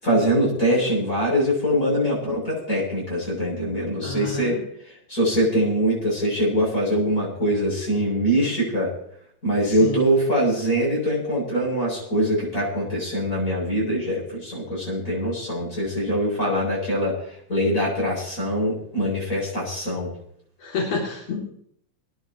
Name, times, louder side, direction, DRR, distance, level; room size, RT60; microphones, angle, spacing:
voice 1, 0.0-4.6 4.9-8.9 9.4-20.1, equal, 25° left, -4 dB, 8.2 m, -23 dB
voice 2, 4.0-4.6 9.8-10.3 20.6-21.4, left 2 dB, 60° left, -4 dB, 3.9 m, -29 dB
27.5 x 10.5 x 3.0 m, 0.66 s
omnidirectional pair, 3.4 m